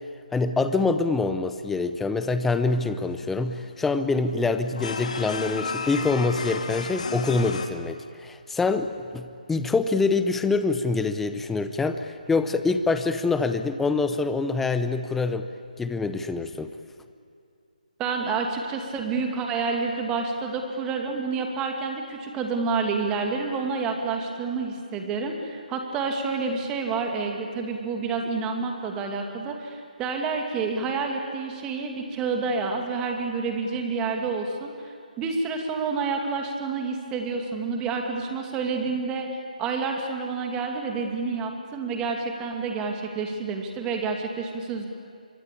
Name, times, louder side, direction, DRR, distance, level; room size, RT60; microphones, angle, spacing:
voice 1, 0.3-15.5 15.8-16.7, left 3 dB, 5° left, 10 dB, 0.7 m, -25 dB
sound 1, 2.7-7.7, left 5 dB, 50° left, 2.2 m, -34 dB
voice 2, 18.0-39.3 39.6-44.9, right 4 dB, 15° right, 3 dB, 2.5 m, -29 dB
26.5 x 24.5 x 8.6 m, 2.4 s
figure-of-eight pair, 150°, 5 cm